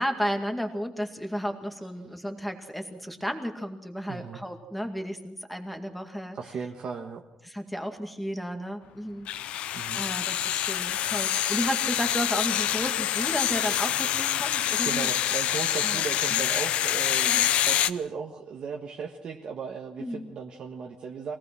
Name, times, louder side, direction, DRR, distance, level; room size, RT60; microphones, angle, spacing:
voice 1, 0.0-6.4 7.4-9.3 9.9-15.1 15.8-16.0 16.3-16.4 17.2-17.5 20.0-20.3, equal, ahead, 5 dB, 2.2 m, -33 dB
voice 2, 4.1-4.4 6.3-7.2 9.7-10.0 14.8-21.3, right 6 dB, 50° right, 1 dB, 1.5 m, -36 dB
sound 1, 9.3-17.9, left 11 dB, 70° left, 0.7 m, -26 dB
23.5 x 18.0 x 6.2 m, 0.86 s
cardioid pair, 140°, 2 cm